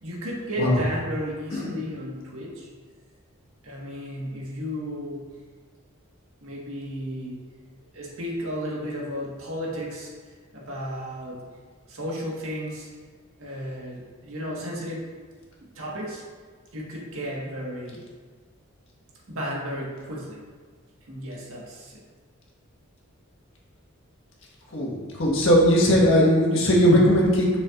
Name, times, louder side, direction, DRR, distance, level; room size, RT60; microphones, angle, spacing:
voice 1, 0.0-2.7 3.6-5.3 6.4-7.4 7.9-10.1 10.5-11.4 11.9-12.9 13.4-15.1 15.7-16.2 16.7-18.0 19.3-20.4 21.1-22.0, equal, 75° right, -4 dB, 1.6 m, -33 dB
voice 2, 24.7-27.5, equal, 65° left, -4 dB, 1.6 m, -19 dB
7.3 x 6.1 x 2.5 m, 1.5 s
head